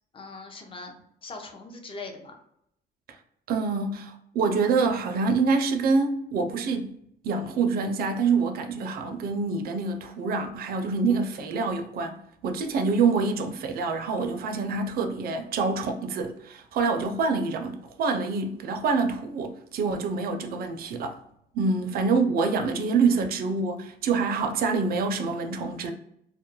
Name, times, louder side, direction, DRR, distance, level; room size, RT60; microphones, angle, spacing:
voice 1, 0.1-0.9 1.2-2.4 21.6-22.3, left 3 dB, 30° left, 0.5 m, -41 dB
voice 2, 3.5-6.9 7.2-21.2 21.5-25.9, right 4 dB, 55° right, 0.4 m, -26 dB
2.2 x 2.1 x 2.9 m
cardioid pair, 105°, 18 cm